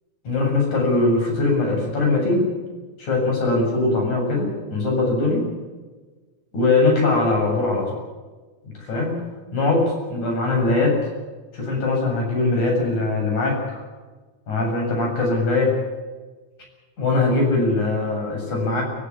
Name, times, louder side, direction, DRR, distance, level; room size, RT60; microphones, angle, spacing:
voice 1, 0.3-2.5 3.0-5.5 6.5-8.0 8.8-9.2 9.5-11.0 11.5-13.8 14.5-15.7 17.0-18.8, left 3 dB, 80° left, 0 dB, 9.0 m, -21 dB
24.0 x 14.5 x 9.8 m, 1.3 s
omnidirectional pair, 3.4 m